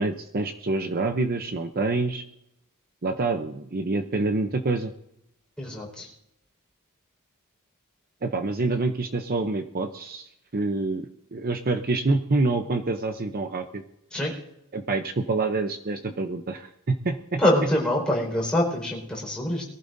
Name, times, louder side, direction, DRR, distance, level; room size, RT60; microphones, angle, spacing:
voice 1, 0.0-2.2 3.0-4.9 8.2-13.8 14.7-17.4, right 3 dB, 40° right, 6 dB, 0.7 m, -27 dB
voice 2, 5.6-6.1 14.1-14.3 17.4-19.6, left 1 dB, 5° left, -4 dB, 4.9 m, -24 dB
22.5 x 15.0 x 2.7 m, 0.83 s
head